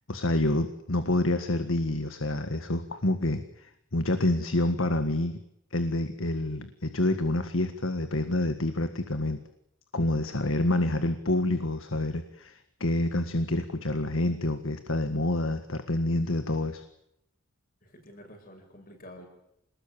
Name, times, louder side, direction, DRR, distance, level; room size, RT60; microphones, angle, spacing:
voice 1, 0.1-5.4 5.7-9.4 9.9-16.8, left 1 dB, 80° left, 9 dB, 1.7 m, -28 dB
voice 2, 17.8-19.3, left 1 dB, 45° left, 4 dB, 7.4 m, -49 dB
27.5 x 20.0 x 8.8 m, 0.81 s
head